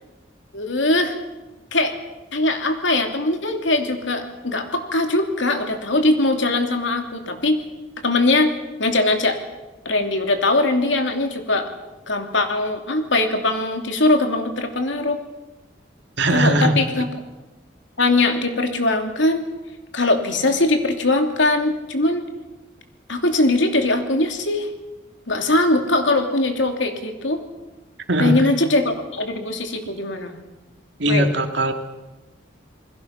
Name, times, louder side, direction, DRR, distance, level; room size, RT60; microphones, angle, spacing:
voice 1, 0.5-1.1 1.7-1.9 2.3-7.6 8.0-8.5 8.8-9.4 9.8-11.7 12.1-15.2 16.3-17.1 18.0-19.5 19.9-22.2 23.1-24.7 25.3-27.4 28.2-30.4 31.1-31.3, left 2 dB, 80° left, 5 dB, 2.9 m, -21 dB
voice 2, 16.2-16.7 28.1-28.5 31.0-31.7, right 1 dB, 70° right, 5 dB, 2.4 m, -19 dB
28.0 x 21.0 x 5.9 m, 1.1 s
head